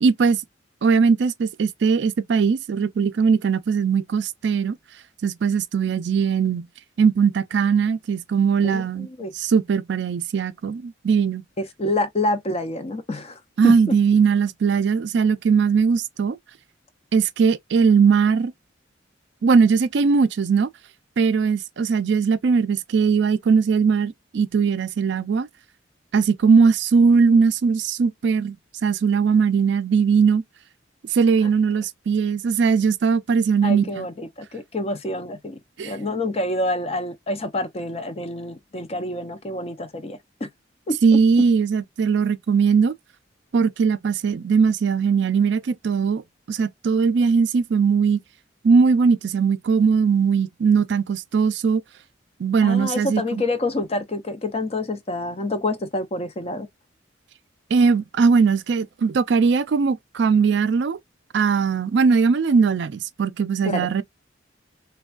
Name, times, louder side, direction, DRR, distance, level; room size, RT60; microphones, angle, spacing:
voice 1, 0.0-0.4 0.8-4.8 5.2-6.7 7.0-9.1 9.3-11.4 13.6-16.4 17.1-18.5 19.4-20.7 21.2-25.5 26.1-28.6 28.8-30.4 31.1-34.1 35.8-36.0 41.0-42.9 43.5-46.2 46.5-48.2 48.6-51.8 52.4-53.4 57.7-61.0 61.3-64.0, right 5 dB, 65° right, 0.4 m, -19 dB
voice 2, 8.6-9.3 11.6-13.9 33.6-40.5 40.9-41.2 52.6-56.7 63.7-63.9, left 2 dB, 35° left, 0.5 m, -27 dB
3.3 x 2.2 x 2.3 m
head